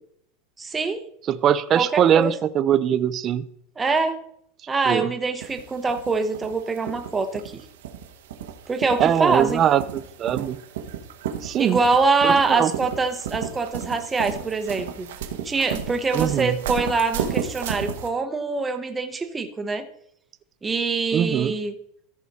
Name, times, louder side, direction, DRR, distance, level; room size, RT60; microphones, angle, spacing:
voice 1, 0.6-1.0 1.7-2.3 3.8-4.2 4.7-7.6 8.7-9.6 11.6-15.1 15.4-19.8 20.6-21.7, right 4 dB, 10° right, 7 dB, 0.8 m, -24 dB
voice 2, 1.3-3.5 4.9-5.1 9.0-10.6 11.4-11.8 12.2-12.7 16.1-16.6 21.1-21.5, right 9 dB, 30° right, 14 dB, 0.4 m, -21 dB
sound 1, 5.4-18.1, right 8 dB, 90° right, 1.2 m, -33 dB
14.0 x 5.0 x 4.1 m, 0.70 s
supercardioid pair, 155°, 0 cm